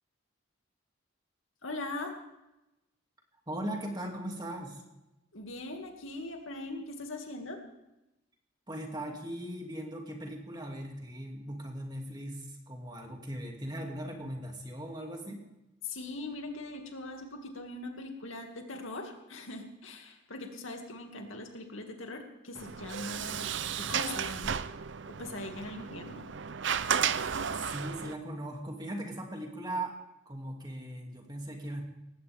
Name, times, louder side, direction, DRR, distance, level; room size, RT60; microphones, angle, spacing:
voice 1, 1.6-2.2 5.3-7.6 15.8-24.6 25.1-26.2, left 2 dB, 75° left, 3 dB, 2.4 m, -41 dB
voice 2, 3.5-4.8 8.7-15.4 25.6-26.0 27.7-30.0 30.3-31.8, right 1 dB, 20° right, 1 dB, 2.5 m, -39 dB
Sliding door, 22.5-28.1, right 7 dB, 60° right, 0.6 m, -33 dB
19.0 x 16.5 x 3.6 m, 0.93 s
head